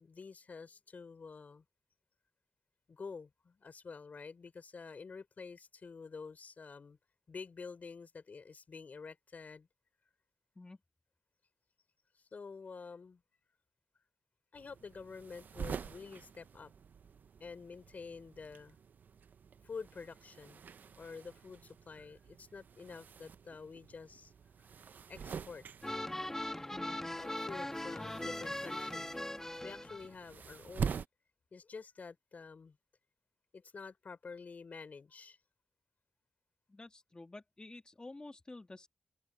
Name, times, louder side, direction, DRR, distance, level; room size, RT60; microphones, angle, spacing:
voice 1, 0.0-1.6 2.9-7.0 7.3-9.7 12.2-13.2 14.5-16.7 17.4-18.8 19.6-20.6 21.0-24.3 24.8-25.6 27.2-29.1 29.6-31.0 31.5-32.8 33.5-35.4, left 5 dB, 60° left, 3.7 m, -49 dB
sound 1, 14.5-31.1, right 7 dB, 85° right, 0.6 m, -46 dB
sound 2, 25.8-30.1, left 1 dB, 15° left, 1.4 m, -40 dB
voice 2, 36.7-38.9, left 2 dB, 30° left, 1.9 m, -50 dB
cardioid pair, 70°, 3 cm